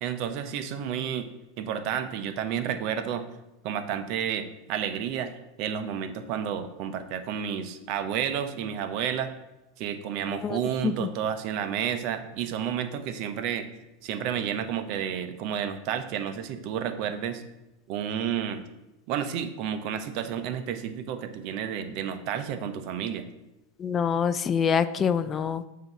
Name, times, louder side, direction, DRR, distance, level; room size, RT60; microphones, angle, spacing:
voice 1, 0.0-1.3 1.6-3.3 3.6-5.3 5.6-9.3 9.8-13.7 14.0-17.4 17.9-18.7 19.1-23.3, right 8 dB, 55° right, 10 dB, 0.7 m, -31 dB
voice 2, 10.3-10.6 10.8-11.1 23.8-25.7, left 7 dB, 30° left, 13 dB, 0.3 m, -26 dB
7.6 x 2.8 x 6.0 m, 0.96 s
hypercardioid pair, 105°, 0 cm